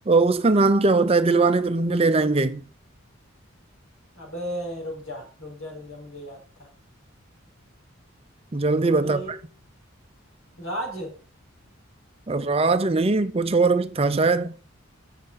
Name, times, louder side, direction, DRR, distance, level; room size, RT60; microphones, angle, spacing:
voice 1, 0.1-2.6 8.5-9.4 12.3-14.5, right 3 dB, 30° right, 0.5 m, -20 dB
voice 2, 4.1-6.7 9.0-9.3 10.6-11.1, equal, 80° left, 4.7 m, -34 dB
8.0 x 6.8 x 5.2 m
head